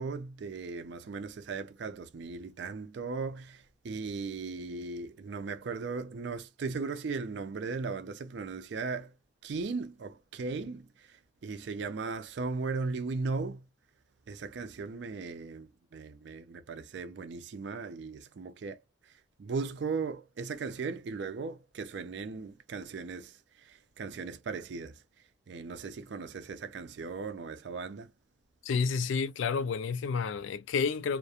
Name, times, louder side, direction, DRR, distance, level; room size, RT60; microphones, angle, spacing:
voice 1, 0.0-9.1 9.4-13.6 14.3-25.0 25.5-28.1, right 4 dB, 65° right, 0.4 m, -37 dB
voice 2, 28.6-31.2, left 5 dB, 85° left, 0.3 m, -30 dB
2.4 x 2.1 x 2.7 m
head